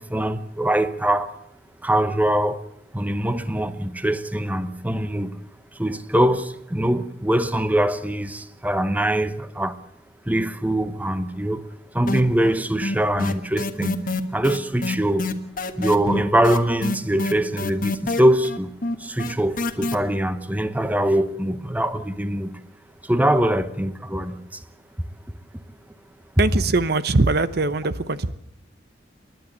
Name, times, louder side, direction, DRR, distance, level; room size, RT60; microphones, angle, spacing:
voice 1, 0.0-1.4 1.8-2.6 2.9-5.4 5.7-9.8 10.3-11.7 11.9-14.0 14.3-15.3 15.8-18.7 19.0-22.6 23.0-24.6, right 1 dB, 10° right, 0.9 m, -23 dB
sound 1, 12.1-12.6 12.8-19.9, left 2 dB, 50° left, 1.5 m, -26 dB
voice 2, 26.4-28.3, right 3 dB, 65° right, 0.8 m, -21 dB
29.0 x 11.5 x 7.9 m
head